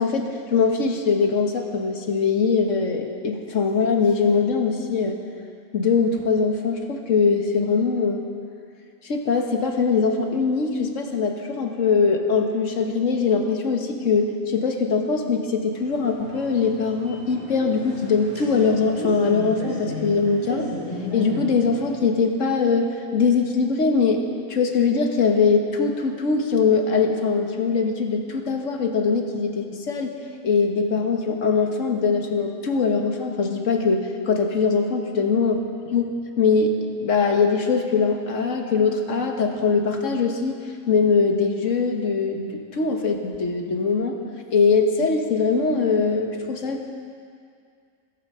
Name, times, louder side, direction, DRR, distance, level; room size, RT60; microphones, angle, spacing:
voice 1, 0.0-5.2 5.7-8.2 9.0-20.7 21.1-24.2 24.5-30.1 30.4-35.6 35.9-36.1 36.4-40.6 40.9-44.2 44.5-46.9, left 5 dB, 65° left, 3 dB, 1.6 m, -22 dB
sound 1, 15.9-21.9, left 1 dB, 20° left, 4.8 m, -34 dB
15.0 x 14.0 x 5.5 m, 2.3 s
omnidirectional pair, 1.5 m